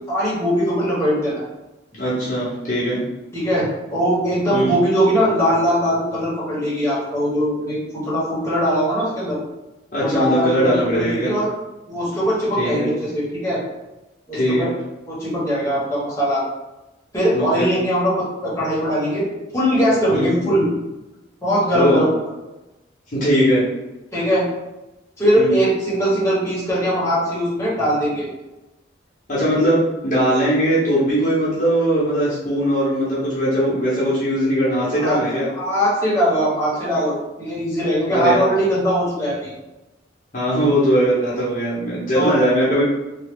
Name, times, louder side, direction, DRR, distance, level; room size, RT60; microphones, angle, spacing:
voice 1, 0.1-1.4 3.3-9.4 10.0-11.5 11.9-13.6 14.3-14.7 15.0-16.4 17.1-19.3 19.5-20.7 21.4-22.1 24.1-24.4 25.2-28.3 34.9-35.2 35.5-39.5 40.8-40.9 42.1-42.4, equal, 15° left, -8 dB, 1.0 m, -20 dB
voice 2, 2.0-3.0 4.5-4.7 9.9-11.3 12.6-12.9 14.3-14.7 17.3-17.7 20.1-20.3 21.7-22.0 23.1-23.6 25.4-25.6 29.3-35.5 38.1-38.4 40.3-42.8, equal, 40° left, -8 dB, 0.8 m, -20 dB
3.0 x 2.2 x 3.5 m, 1.0 s
head